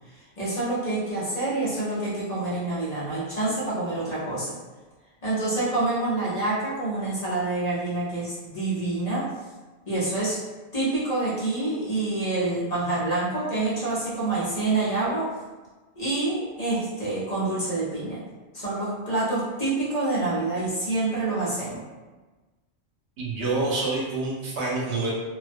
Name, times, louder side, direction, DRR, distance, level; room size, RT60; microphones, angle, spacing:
voice 1, 0.4-4.5 5.2-9.3 9.9-10.4 10.7-15.3 16.0-18.2 18.5-21.8, right 2 dB, 45° left, -9 dB, 0.7 m, -27 dB
voice 2, 23.2-25.1, right 3 dB, 80° right, -4 dB, 1.0 m, -27 dB
2.3 x 2.1 x 2.5 m, 1.3 s
omnidirectional pair, 1.1 m